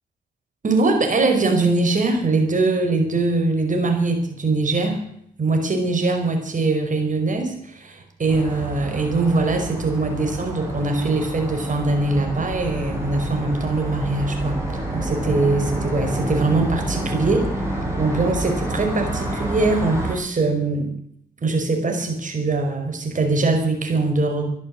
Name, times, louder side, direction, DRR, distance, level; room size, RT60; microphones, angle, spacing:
voice 1, 0.6-5.0 5.4-17.6 18.0-20.9 21.4-24.5, right 3 dB, 50° right, 5 dB, 5.2 m, -22 dB
sound 1, 8.3-20.1, right 1 dB, 15° right, 7.9 m, -28 dB
13.0 x 11.0 x 9.8 m, 0.70 s
supercardioid pair, 50°, 17 cm